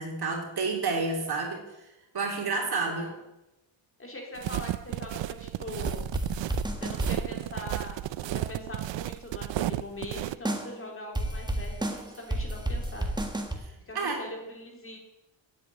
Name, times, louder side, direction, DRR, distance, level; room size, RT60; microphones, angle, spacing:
voice 1, 0.0-1.6 2.1-3.1 13.9-14.2, right 4 dB, 50° right, 1 dB, 3.1 m, -29 dB
voice 2, 4.0-6.0 6.8-13.2 13.9-15.0, left 1 dB, 25° left, 0 dB, 3.3 m, -42 dB
sound 1, 4.4-10.4, right 14 dB, 65° right, 0.6 m, -33 dB
sound 2, 5.8-7.2 10.5-10.7 11.2-13.5, right 1 dB, 10° right, 1.5 m, -31 dB
9.0 x 8.3 x 9.3 m, 0.96 s
wide cardioid pair, 125°, 48 cm